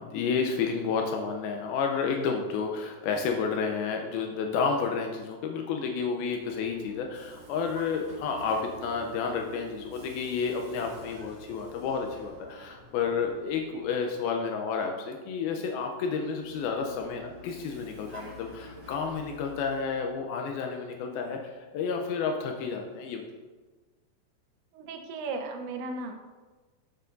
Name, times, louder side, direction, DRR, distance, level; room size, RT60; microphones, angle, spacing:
voice 1, 0.0-23.3, left 5 dB, 85° left, 3 dB, 2.1 m, -31 dB
Vehicle, 6.0-14.5 16.2-20.1, equal, 40° right, 3.0 m, -49 dB
sound 1, 15.0-18.5, left 8 dB, 70° left, 5.1 m, -55 dB
voice 2, 24.7-26.4, right 3 dB, 85° right, 4 dB, 3.1 m, -36 dB
13.5 x 6.8 x 2.6 m, 1.3 s
omnidirectional pair, 5.0 m